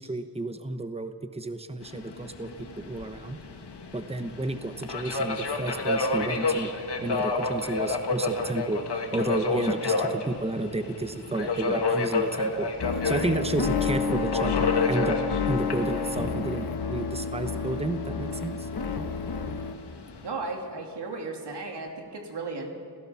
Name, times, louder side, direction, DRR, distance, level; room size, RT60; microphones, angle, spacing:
voice 1, 0.0-2.5 2.8-3.4 3.9-6.7 7.0-8.8 9.1-12.7 13.0-15.2 15.4-18.7, right 2 dB, 15° right, 8 dB, 1.0 m, -31 dB
Subway metro underground, 1.8-20.3, left 3 dB, 85° left, 1.9 m, -31 dB
sound 1, 12.8-19.7, left 5 dB, 65° left, 1.4 m, -29 dB
voice 2, 20.2-22.7, right 3 dB, 90° right, 2 dB, 3.0 m, -35 dB
29.5 x 16.5 x 5.9 m, 2.2 s
wide cardioid pair, 120°, 40 cm